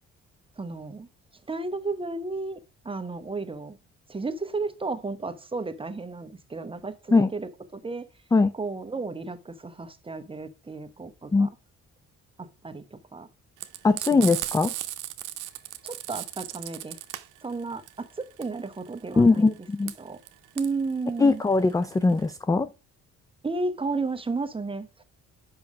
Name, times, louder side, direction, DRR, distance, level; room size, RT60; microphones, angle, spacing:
voice 1, 0.6-1.1 1.5-2.6 2.8-3.8 4.1-8.1 8.5-11.5 12.4-13.3 14.1-14.3 15.8-17.0 17.4-19.5 20.0-20.2 20.5-21.4 23.4-25.0, right 3 dB, 20° right, 0.9 m, -33 dB
Frying (food), 13.6-22.3, right 14 dB, 85° right, 0.7 m, -36 dB
voice 2, 13.8-14.7 19.2-19.9 21.2-22.7, left 3 dB, 10° left, 0.3 m, -21 dB
5.6 x 5.4 x 4.7 m
cardioid pair, 90°, 30 cm